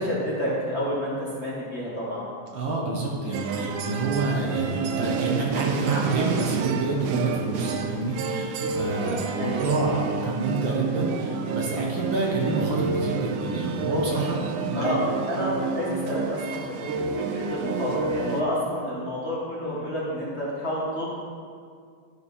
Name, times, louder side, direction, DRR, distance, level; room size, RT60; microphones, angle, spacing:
voice 1, 0.0-2.3 9.3-9.7 14.7-15.0 15.2-16.9 17.1-21.0, left 1 dB, 30° left, -8 dB, 1.3 m, -29 dB
voice 2, 2.5-14.9, right 3 dB, 55° right, -2 dB, 1.5 m, -28 dB
sound 1, 3.3-18.4, right 5 dB, 90° right, 2.1 m, -29 dB
12.0 x 5.3 x 4.2 m, 2.1 s
omnidirectional pair, 3.3 m